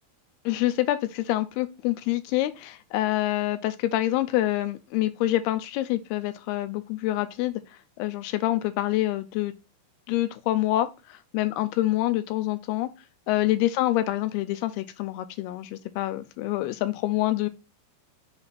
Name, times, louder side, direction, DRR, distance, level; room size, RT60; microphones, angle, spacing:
voice 1, 0.5-7.6 8.0-9.5 10.1-12.9 13.3-17.5, left 15 dB, 80° left, 2.6 m, -26 dB
7.1 x 3.3 x 4.1 m
omnidirectional pair, 4.7 m